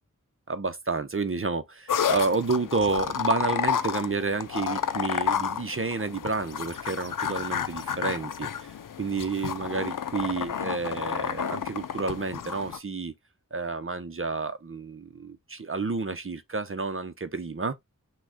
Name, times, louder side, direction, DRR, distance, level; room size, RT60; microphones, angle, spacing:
voice 1, 0.5-13.1 13.5-17.7, right 4 dB, 40° right, 0.8 m, -30 dB
sound 1, 1.9-12.8, left 8 dB, 85° left, 0.5 m, -31 dB
6.1 x 2.3 x 3.6 m
wide cardioid pair, 70°, 31 cm